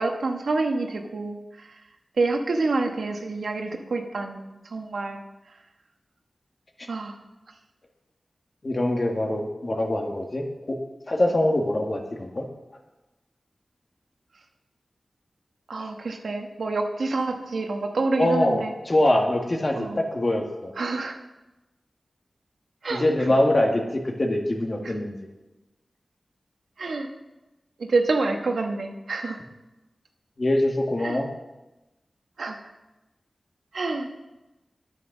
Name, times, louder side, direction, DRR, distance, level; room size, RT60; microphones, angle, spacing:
voice 1, 0.0-1.8 2.2-5.2 6.9-7.2 15.7-18.7 19.7-20.0 20.8-21.2 22.8-23.0 24.8-24.9 26.8-27.1 27.8-29.4 31.0-31.2 32.4-32.6 33.7-34.2, right 3 dB, 90° right, 4 dB, 1.2 m, -27 dB
voice 2, 8.6-10.8 11.1-12.4 18.2-20.7 22.9-25.1 30.4-31.3, left 1 dB, 40° left, 2 dB, 1.7 m, -24 dB
9.3 x 9.3 x 5.9 m, 1.0 s
wide cardioid pair, 80°, 0 cm